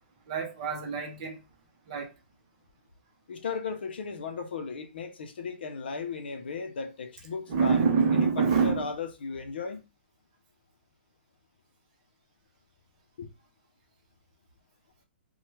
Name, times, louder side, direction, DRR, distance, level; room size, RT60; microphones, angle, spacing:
voice 1, 0.3-1.4 1.9-2.1 7.5-8.9, right 5 dB, 30° right, 0.7 m, -26 dB
voice 2, 3.3-7.8 8.1-9.9 13.2-13.3, left 5 dB, 55° left, 0.6 m, -36 dB
3.1 x 2.1 x 3.0 m
hypercardioid pair, 175°, 6 cm